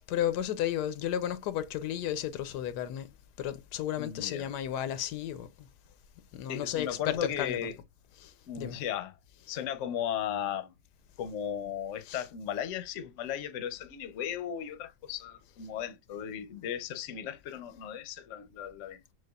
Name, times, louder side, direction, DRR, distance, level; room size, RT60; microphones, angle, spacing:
voice 1, 0.1-3.1 3.4-5.7 6.3-7.6 8.2-8.8 12.1-12.2, left 11 dB, 85° left, 1.2 m, -33 dB
voice 2, 4.0-4.5 6.5-7.8 8.5-9.1 9.5-10.7 11.2-19.0, left 9 dB, 60° left, 0.9 m, -36 dB
6.4 x 2.4 x 2.3 m
omnidirectional pair, 1.7 m